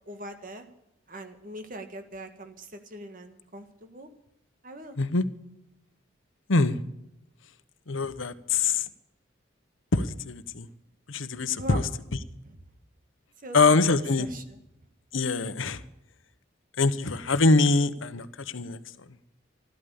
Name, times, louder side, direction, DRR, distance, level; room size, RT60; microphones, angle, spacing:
voice 1, 0.1-0.6 1.1-4.1 4.6-5.0 11.6-11.9 12.4-12.6 13.4-13.9 14.2-14.6, right 1 dB, 45° right, 7 dB, 1.7 m, -41 dB
voice 2, 7.9-8.8 9.9-10.7 11.1-11.8 13.5-14.3 15.1-15.8 16.8-18.8, left 3 dB, 85° left, 12 dB, 1.0 m, -24 dB
13.0 x 12.5 x 7.0 m, 0.85 s
head